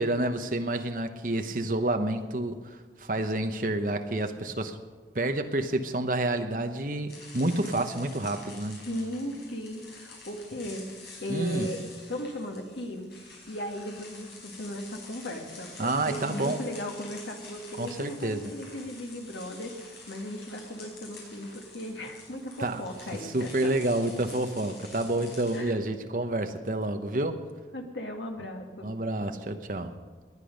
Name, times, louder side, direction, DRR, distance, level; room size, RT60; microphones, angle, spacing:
voice 1, 0.0-4.8 5.1-8.8 11.3-11.7 15.8-16.6 17.8-18.5 22.6-22.8 23.2-27.4 28.8-29.9, right 2 dB, 50° right, 7 dB, 1.0 m, -29 dB
sound 1, 7.1-25.6, left 3 dB, 65° left, 5.4 m, -48 dB
voice 2, 8.8-10.8 11.2-11.8 12.1-13.1 13.5-23.7 25.5-25.8 27.7-28.9, left 1 dB, 90° left, 3 dB, 1.9 m, -37 dB
19.0 x 9.8 x 5.3 m, 1.4 s
head